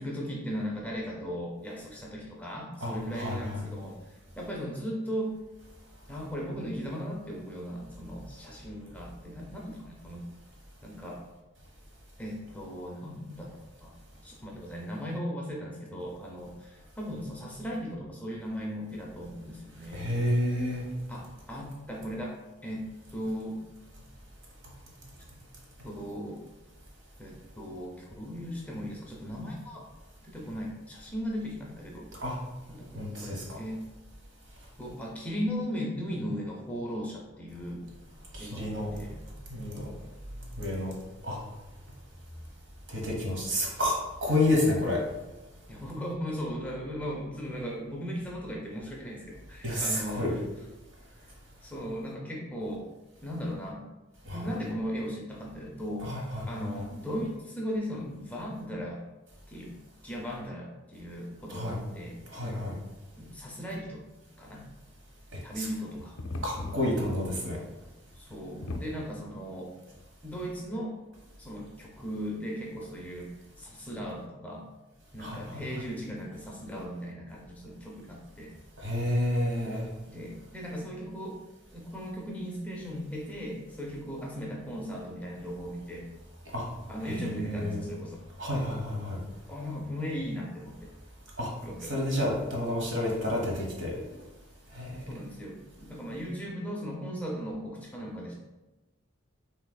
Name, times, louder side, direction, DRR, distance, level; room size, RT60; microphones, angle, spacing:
voice 1, 0.0-5.4 6.1-10.3 10.8-11.2 12.2-13.9 14.2-20.1 21.1-23.6 25.8-26.4 27.2-29.9 30.3-32.1 32.7-33.8 34.8-37.9 38.4-38.7 39.0-39.2 45.7-50.2 51.6-52.9 53.2-53.9 54.3-56.1 56.5-59.0 59.5-59.7 60.0-62.2 63.1-64.0 64.4-64.6 65.4-66.2 68.1-69.7 70.2-71.0 71.4-73.3 73.6-74.7 75.1-78.5 80.1-81.4 81.7-86.1 86.9-88.2 89.5-90.9 91.6-91.9 95.1-98.3, equal, 5° left, -2 dB, 0.5 m, -37 dB
voice 2, 2.8-3.7 19.9-20.8 32.2-32.4 32.9-33.4 38.3-38.9 39.5-39.9 40.6-40.9 41.2-41.4 42.9-45.0 49.6-50.3 54.2-54.5 56.0-56.8 61.5-61.8 62.3-62.7 65.3-65.7 66.4-67.6 75.2-75.6 78.8-79.9 86.5-86.7 87.0-87.8 88.4-89.2 91.4-91.5 91.8-93.9 94.7-95.0, left 1 dB, 60° right, -1 dB, 1.1 m, -30 dB
sound 1, 66.0-67.4 67.7-67.8 68.1-68.2 68.6-69.3 70.0-70.1, left 2 dB, 75° left, 0.5 m, -37 dB
6.0 x 3.2 x 2.2 m, 1.1 s
head